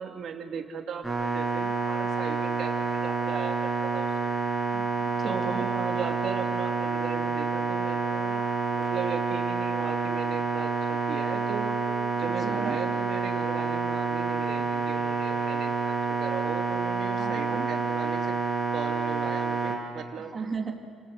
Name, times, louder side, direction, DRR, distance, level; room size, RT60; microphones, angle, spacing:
voice 1, 0.0-4.4 5.2-18.3 18.7-20.3, right 6 dB, 45° right, 4 dB, 2.4 m, -37 dB
sound 1, 1.0-19.8, right 4 dB, ahead, 5.0 m, -28 dB
voice 2, 4.7-5.6 12.3-12.8 17.2-17.7 20.3-20.7, right 4 dB, 25° right, 3 dB, 2.4 m, -36 dB
29.5 x 18.5 x 6.4 m, 2.2 s
cardioid pair, 165°, 0 cm